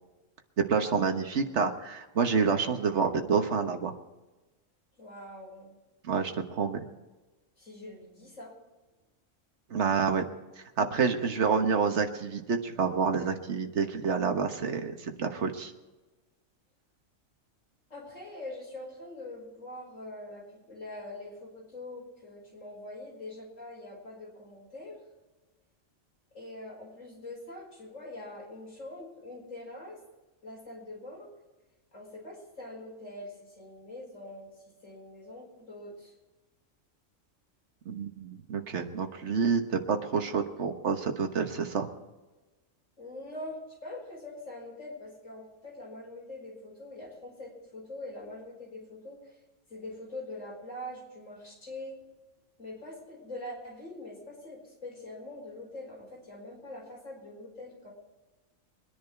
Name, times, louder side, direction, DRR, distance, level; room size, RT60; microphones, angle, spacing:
voice 1, 0.7-3.9 6.0-6.8 9.7-10.2 10.8-15.7 37.9-41.9, right 5 dB, 60° right, 5 dB, 1.5 m, -28 dB
voice 2, 5.0-5.8 7.6-8.5 17.9-25.0 26.3-30.0 30.4-31.3 31.9-34.5 34.8-36.1 43.0-49.4 49.7-52.0 52.6-57.9, left 1 dB, 75° left, -2 dB, 5.7 m, -43 dB
23.0 x 10.5 x 4.5 m, 1.2 s
omnidirectional pair, 1.3 m